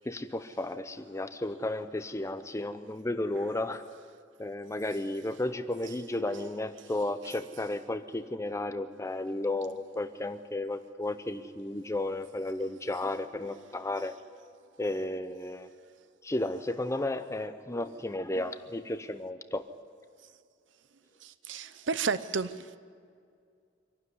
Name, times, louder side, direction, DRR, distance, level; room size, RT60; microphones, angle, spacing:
voice 1, 0.0-3.8 4.4-14.2 14.8-15.7 16.2-19.7, left 2 dB, 15° left, 0.6 m, -33 dB
voice 2, 21.2-22.8, right 5 dB, 80° right, 0.7 m, -32 dB
25.0 x 12.0 x 9.6 m
head